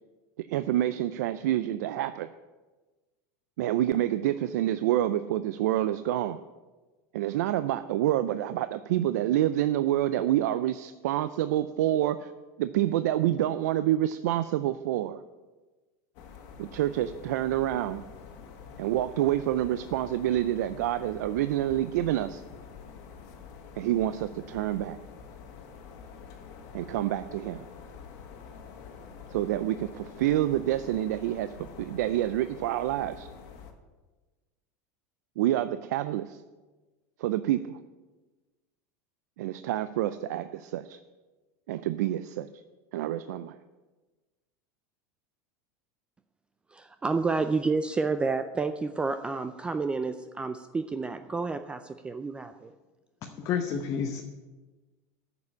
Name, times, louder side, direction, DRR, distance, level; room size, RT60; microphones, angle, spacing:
voice 1, 0.5-2.3 3.6-6.4 7.1-12.3 12.6-15.2 16.6-18.0 18.8-22.4 23.8-25.0 26.7-27.6 29.3-33.3 35.4-36.4 37.2-37.7 39.4-41.0 41.7-42.5 42.9-43.5, right 13 dB, 85° right, 12 dB, 0.5 m, -27 dB
sound 1, 16.1-33.7, left 6 dB, 60° left, 1.7 m, -47 dB
voice 2, 46.7-52.7, right 4 dB, 10° right, 9 dB, 0.4 m, -30 dB
voice 3, 53.2-54.2, left 7 dB, 35° left, 4 dB, 0.9 m, -30 dB
9.5 x 6.9 x 8.7 m, 1.2 s
supercardioid pair, 145°, 9 cm